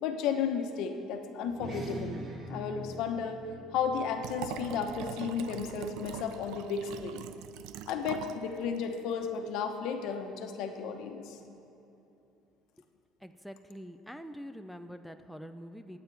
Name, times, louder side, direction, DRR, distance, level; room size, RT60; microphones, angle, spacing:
voice 1, 0.0-2.2 2.5-3.4 3.7-7.2 7.9-11.4, left 6 dB, 75° left, 5 dB, 1.0 m, -33 dB
sound 1, 1.5-6.3, equal, 45° right, 2.6 m, -44 dB
Liquid, 4.2-8.4 8.8-8.9, right 11 dB, 80° right, 0.4 m, -42 dB
voice 2, 13.2-16.0, equal, ahead, 7 dB, 0.5 m, -45 dB
21.5 x 8.9 x 3.4 m, 2.9 s
cardioid pair, 105°, 0 cm